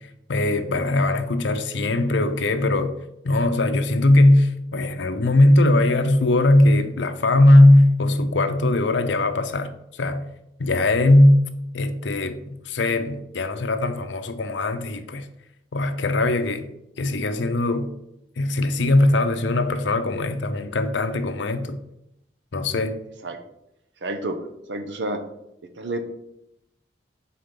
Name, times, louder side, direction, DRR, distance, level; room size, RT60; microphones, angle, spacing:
voice 1, 0.3-2.9 3.2-10.3 10.6-11.4 11.7-15.3 15.7-16.7 17.0-17.9 18.4-21.8 22.5-23.0, left 1 dB, 80° left, 0.6 m, -19 dB
voice 2, 24.0-24.4 24.7-25.2 25.8-26.0, right 2 dB, 75° right, 0.8 m, -29 dB
5.1 x 4.2 x 5.9 m
head